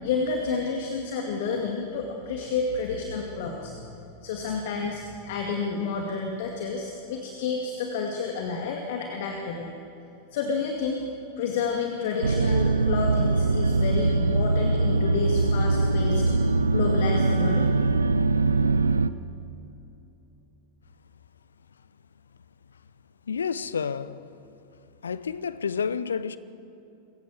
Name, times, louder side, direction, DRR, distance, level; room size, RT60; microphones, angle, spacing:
voice 1, 0.0-3.9 4.2-9.7 10.3-11.0 11.4-16.3 16.7-17.7, left 4 dB, 55° left, 2.2 m, -30 dB
sound 1, 12.2-19.1, right 3 dB, 75° right, 0.6 m, -22 dB
voice 2, 23.2-24.3 25.0-26.4, left 6 dB, 70° left, 0.8 m, -30 dB
27.5 x 15.5 x 7.7 m
figure-of-eight pair, 90°, 0 cm